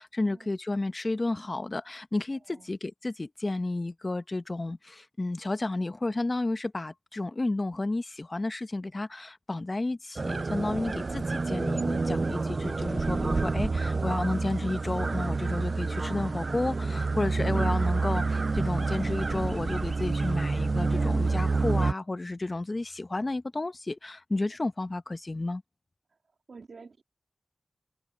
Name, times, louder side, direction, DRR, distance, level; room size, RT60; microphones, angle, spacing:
voice 1, 0.0-25.6, left 2 dB, 45° left, 1.0 m, -32 dB
voice 2, 2.3-2.7 26.1-26.2 26.5-27.0, right 4 dB, 80° right, 2.8 m, -50 dB
sound 1, 10.2-21.9, right 3 dB, 60° right, 0.4 m, -28 dB
cardioid pair, 50°, 0 cm